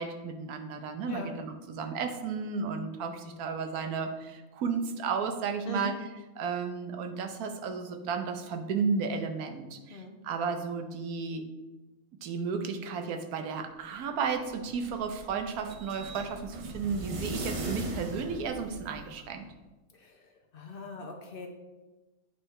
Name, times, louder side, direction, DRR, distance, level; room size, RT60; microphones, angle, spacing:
voice 1, 0.0-5.9 6.4-11.4 12.2-19.5, right 5 dB, 85° right, 6 dB, 1.2 m, -33 dB
sound 1, 14.2-19.3, right 2 dB, 50° right, 0.4 m, -39 dB
voice 2, 19.9-20.3 20.5-21.5, left 2 dB, 50° left, 3 dB, 0.7 m, -40 dB
8.7 x 3.2 x 4.6 m, 1.1 s
omnidirectional pair, 1.5 m